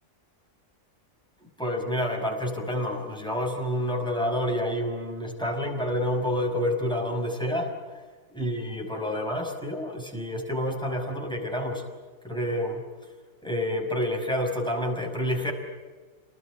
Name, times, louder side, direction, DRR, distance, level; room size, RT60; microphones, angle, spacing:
voice 1, 1.6-7.7 8.3-11.8 12.2-12.8 13.4-15.5, equal, 5° left, 1 dB, 5.7 m, -28 dB
30.0 x 20.0 x 9.2 m, 1.4 s
omnidirectional pair, 1.5 m